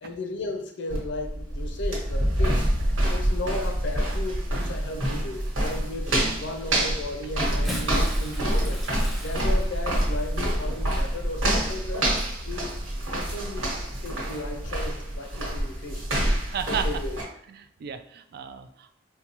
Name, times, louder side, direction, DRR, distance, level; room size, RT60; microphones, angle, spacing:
voice 1, 0.0-2.7 3.1-8.8 9.2-12.1 12.4-12.7 13.1-16.3 16.7-17.2, left 2 dB, 65° left, 4 dB, 0.5 m, -35 dB
sound 1, 0.9-17.2, right 1 dB, 85° right, 1.4 m, -27 dB
Bathtub (filling or washing) / Splash splatter, 7.4-13.1 14.0-14.2 15.6-15.7, equal, ahead, 0.6 m, -41 dB
voice 2, 16.5-16.9 17.5-19.0, right 7 dB, 55° right, 9 dB, 0.3 m, -34 dB
4.5 x 2.2 x 2.8 m, 0.75 s
head